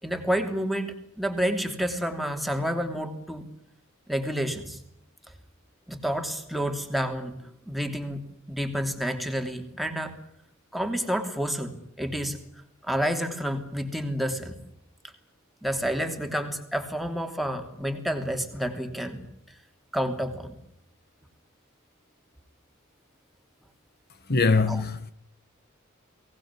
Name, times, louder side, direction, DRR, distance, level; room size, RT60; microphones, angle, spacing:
voice 1, 0.0-3.5 4.1-4.8 5.9-7.3 7.7-10.1 10.7-12.4 12.8-14.6 15.6-19.3 19.9-20.6 24.7-24.8, equal, ahead, 3.1 m, -29 dB
voice 2, 24.3-25.1, left 4 dB, 50° left, 1.3 m, -22 dB
23.5 x 19.0 x 9.7 m
head